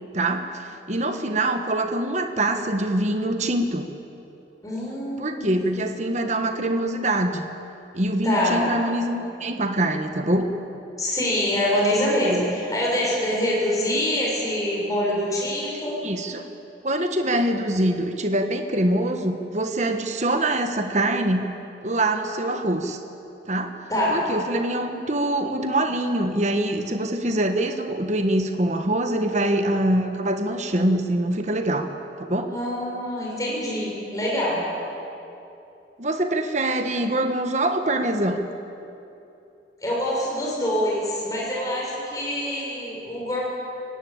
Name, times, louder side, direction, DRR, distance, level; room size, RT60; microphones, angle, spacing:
voice 1, 0.1-3.9 5.2-7.4 7.9-10.5 16.0-16.5 16.8-21.4 21.8-23.0 23.5-23.7 24.1-31.9 32.2-32.5 36.0-38.4, right 1 dB, 40° right, 6 dB, 1.3 m, -24 dB
voice 2, 4.6-5.8 8.2-8.6 11.0-16.0 23.9-24.2 32.5-34.6 39.8-43.4, left 1 dB, 20° left, -5 dB, 6.4 m, -25 dB
23.0 x 19.0 x 8.8 m, 2.8 s
head